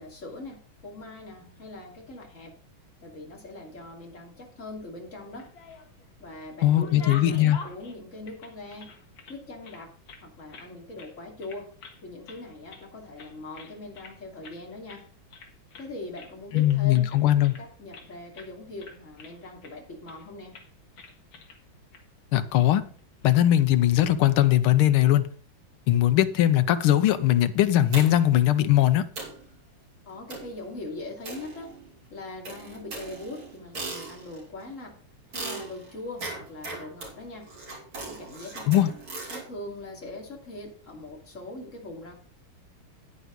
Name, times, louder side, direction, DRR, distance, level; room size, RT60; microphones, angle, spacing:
voice 1, 0.0-2.5 3.0-5.5 6.2-8.9 9.3-9.9 10.2-11.7 12.0-15.0 15.8-20.6 30.1-31.7 32.1-35.0 35.3-37.5 38.0-38.9 39.3-42.1, left 2 dB, 35° left, 2.9 m, -41 dB
sound 1, 5.2-6.1 6.4-9.4 9.6-10.7 11.0-11.2 11.4-12.0 12.3-12.9 13.2-14.2 14.4-14.6 14.9-15.0 15.3-15.9 16.2-18.1 18.3-18.5 18.8-19.7 20.1-20.3 20.5-20.7 21.0-21.6 21.9-22.0 23.0-23.3, left 5 dB, 65° left, 2.4 m, -45 dB
voice 2, 6.6-7.6 16.5-17.5 22.3-22.8 23.2-25.3 25.9-29.1 38.7-38.9, left 13 dB, 85° left, 1.7 m, -20 dB
sound 2, 27.9-28.4 28.8-28.9 29.2-29.5 30.3-30.6 31.2-32.0 32.4-34.5 35.3-39.5, right 3 dB, 70° right, 4.2 m, -39 dB
9.7 x 9.4 x 3.9 m
omnidirectional pair, 2.3 m